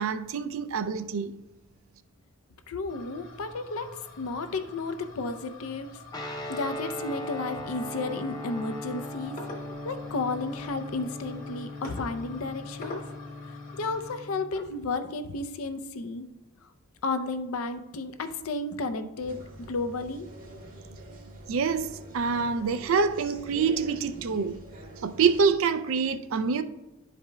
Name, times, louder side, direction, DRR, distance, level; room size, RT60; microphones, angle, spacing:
voice 1, 0.0-1.3 21.5-24.6 25.0-26.6, right 5 dB, 70° right, 0.4 m, -26 dB
voice 2, 2.7-3.9 4.2-6.0 6.5-9.4 9.8-13.0 13.8-16.3 17.0-20.3, left 3 dB, 80° left, 0.5 m, -32 dB
sound 1, 2.9-14.2, left 2 dB, 40° left, 1.1 m, -46 dB
Guitar, 6.1-14.6, left 1 dB, 20° left, 0.5 m, -39 dB
sound 2, 19.2-25.6, right 2 dB, 40° right, 0.9 m, -45 dB
11.5 x 4.9 x 2.2 m
head